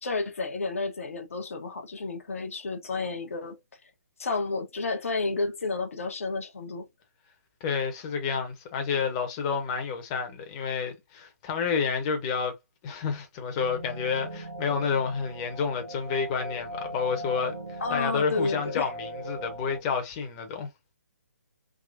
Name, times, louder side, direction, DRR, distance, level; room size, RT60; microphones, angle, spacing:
voice 1, 0.0-3.6 4.2-6.9 17.8-18.9, left 3 dB, 55° left, 1.0 m, -31 dB
voice 2, 7.6-12.5 12.8-20.7, left 6 dB, 25° left, 1.0 m, -30 dB
sound 1, 13.5-19.8, right 1 dB, 60° right, 1.1 m, -39 dB
3.7 x 2.9 x 2.5 m
figure-of-eight pair, 135°, 9 cm